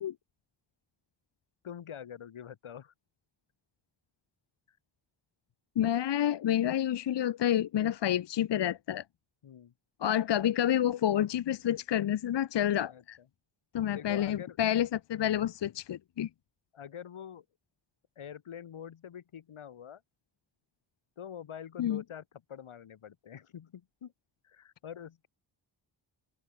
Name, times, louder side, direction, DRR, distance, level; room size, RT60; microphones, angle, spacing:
voice 1, 1.6-2.9 4.7-4.8 9.4-9.7 12.9-13.0 13.9-14.6 16.7-17.5 18.2-20.0 21.2-24.1 24.4-25.3, left 9 dB, 90° left, 5.5 m, -45 dB
voice 2, 5.8-9.0 10.0-13.2 13.7-16.3 21.8-22.0, left 11 dB, 60° left, 0.7 m, -29 dB
open air
cardioid pair, 40°, 48 cm